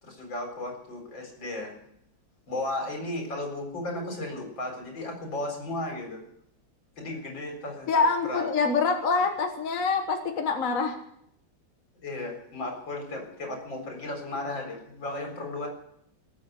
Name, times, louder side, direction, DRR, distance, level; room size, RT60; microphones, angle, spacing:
voice 1, 0.0-1.7 2.5-6.2 7.0-8.5 12.0-15.7, left 2 dB, 80° left, 2 dB, 4.9 m, -35 dB
voice 2, 7.9-11.0, left 4 dB, 45° left, 5 dB, 1.6 m, -25 dB
19.5 x 8.6 x 8.2 m, 0.73 s
omnidirectional pair, 2.0 m